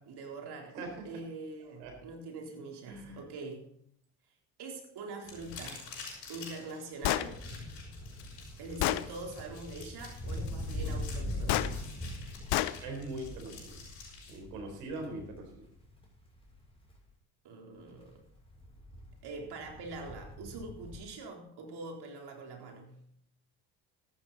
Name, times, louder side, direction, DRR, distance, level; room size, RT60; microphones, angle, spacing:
voice 1, 0.1-0.8 1.0-3.7 4.6-5.9 6.3-7.4 8.6-11.7 17.4-18.2 19.2-23.0, right 3 dB, 55° right, 1 dB, 3.9 m, -44 dB
voice 2, 0.7-1.1 1.8-1.9 2.9-3.2 12.8-13.8 14.3-15.6, right 2 dB, 75° right, 3 dB, 4.4 m, -41 dB
sound 1, 5.2-14.3, left 4 dB, 80° left, 5.9 m, -49 dB
Gunshot gunfire, 7.0-7.3 8.2-8.3 8.8-9.1 11.5-11.7 12.5-12.8, left 15 dB, 60° left, 0.8 m, -28 dB
sound 2, 7.2-17.0 17.9-21.0, left 1 dB, 10° left, 6.6 m, -42 dB
14.0 x 11.5 x 4.1 m, 0.67 s
hypercardioid pair, 60°, 46 cm